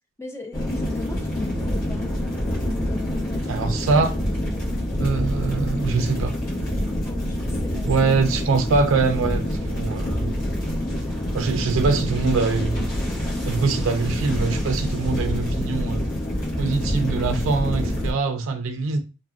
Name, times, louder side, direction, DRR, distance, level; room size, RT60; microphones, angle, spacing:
voice 1, 0.2-2.2 2.4-4.0 7.0-8.4, left 3 dB, 15° left, 0.3 m, -37 dB
sound 1, 0.5-18.1, equal, 40° left, 0.9 m, -26 dB
voice 2, 3.5-4.1 5.0-6.3 7.9-10.3 11.3-12.8 13.5-16.0 16.6-19.0, right 4 dB, 70° right, 0.4 m, -23 dB
3.2 x 2.1 x 2.3 m
head